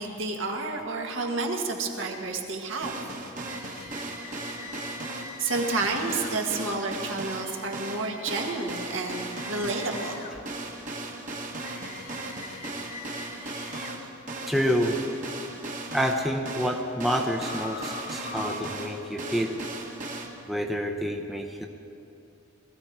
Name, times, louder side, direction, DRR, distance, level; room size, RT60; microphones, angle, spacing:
voice 1, 0.0-3.0 5.4-10.3, right 3 dB, 70° right, 1 dB, 1.7 m, -30 dB
sound 1, 2.8-20.3, right 2 dB, 40° right, 1.4 m, -37 dB
sound 2, 3.4-6.4 7.3-10.4 11.6-14.0 17.4-18.6, left 3 dB, 40° left, 1.2 m, -43 dB
voice 2, 14.5-15.0 15.9-19.6 20.5-21.7, equal, ahead, 2 dB, 0.7 m, -28 dB
20.5 x 14.5 x 4.8 m, 2.7 s
head